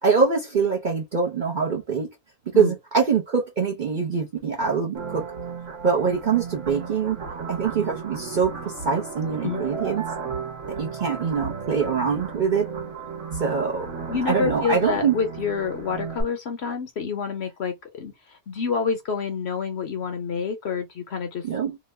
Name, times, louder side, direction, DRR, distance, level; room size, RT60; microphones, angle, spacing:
voice 1, 0.0-2.1 2.5-5.2 5.8-7.2 7.5-10.0 10.8-12.7 13.3-13.9 14.3-15.1 21.4-21.8, right 6 dB, 45° right, 0.7 m, -24 dB
sound 1, 4.9-16.2, right 5 dB, 65° right, 1.3 m, -34 dB
voice 2, 14.1-18.1 18.5-21.4, left 6 dB, 60° left, 0.8 m, -28 dB
2.8 x 2.2 x 3.2 m
omnidirectional pair, 1.5 m